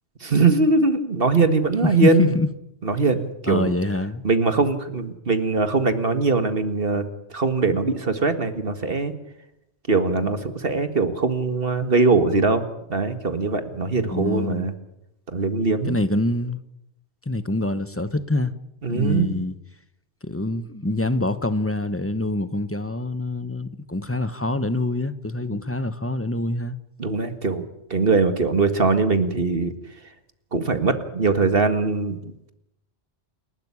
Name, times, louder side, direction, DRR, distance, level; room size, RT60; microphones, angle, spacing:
voice 1, 0.2-2.3 2.8-3.7 4.2-7.0 7.3-9.1 9.9-14.7 15.3-16.0 18.8-19.4 27.0-29.7 30.5-32.2, right 3 dB, 55° right, 2.0 m, -21 dB
voice 2, 1.8-2.5 3.5-4.2 14.1-14.7 15.9-16.6 17.3-18.5 18.9-19.5 20.2-26.8, left 2 dB, 15° left, 1.0 m, -25 dB
28.5 x 12.0 x 9.8 m
omnidirectional pair, 1.1 m